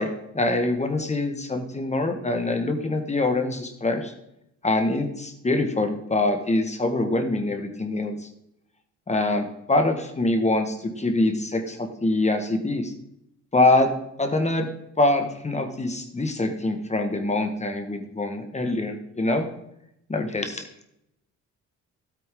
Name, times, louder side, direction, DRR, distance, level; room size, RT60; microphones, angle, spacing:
voice 1, 0.0-4.1 4.6-8.3 9.1-12.9 13.5-13.9 14.2-14.7 15.0-19.5 20.1-20.7, left 2 dB, 20° left, 6 dB, 1.7 m, -24 dB
12.5 x 8.8 x 3.8 m, 0.80 s
cardioid pair, 90°, 30 cm